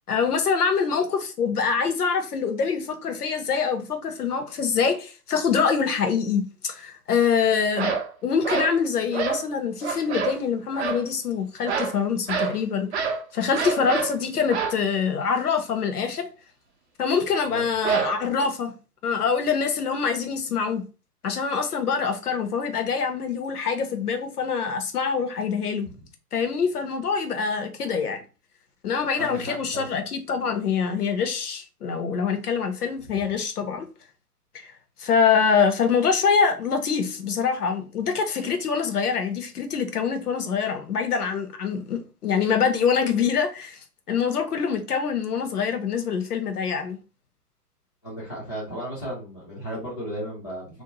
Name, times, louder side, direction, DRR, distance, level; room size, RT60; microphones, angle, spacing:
voice 1, 0.1-8.0 8.2-12.9 13.3-16.3 17.0-18.7 19.0-20.8 21.2-25.9 26.3-28.2 28.8-33.9 34.5-34.7 35.0-43.8 44.1-47.0, left 6 dB, 70° left, 0.8 m, -25 dB
sound 1, 7.8-8.1 8.4-8.8 9.1-9.5 9.8-10.4 10.7-11.0 11.6-12.0 12.3-12.6 12.9-13.2 13.5-14.2 14.5-14.8 17.8-18.5, right 6 dB, 45° right, 0.5 m, -27 dB
voice 2, 29.2-29.8 48.0-50.7, equal, 20° left, 0.4 m, -34 dB
2.6 x 2.1 x 2.9 m
figure-of-eight pair, 125°, 47 cm